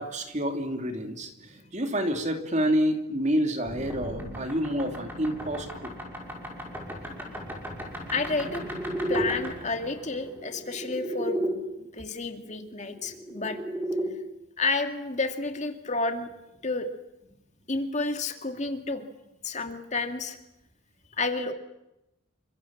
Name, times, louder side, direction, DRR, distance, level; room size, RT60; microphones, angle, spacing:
voice 1, 0.0-5.9, equal, 35° right, 6 dB, 2.9 m, -28 dB
sound 1, 3.6-11.5 12.8-14.1, right 1 dB, 10° right, 5.9 m, -34 dB
voice 2, 8.1-8.6 9.1-11.5 11.8-13.6 14.6-16.3 16.6-16.9 17.7-19.0 19.4-20.4 21.2-21.5, left 3 dB, 35° left, 6 dB, 2.4 m, -30 dB
28.5 x 25.5 x 7.4 m, 0.88 s
head